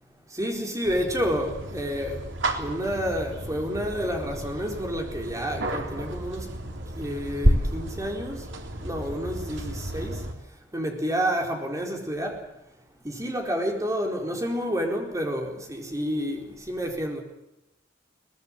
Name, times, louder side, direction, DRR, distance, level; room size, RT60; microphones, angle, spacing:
voice 1, 0.4-2.2 2.6-6.5 7.0-8.4 8.8-10.1 10.7-12.4 13.0-17.2, equal, 15° right, 2 dB, 4.4 m, -29 dB
sound 1, 0.8-10.3, right 1 dB, 80° right, 3.5 m, -31 dB
23.0 x 19.0 x 7.6 m, 0.91 s
head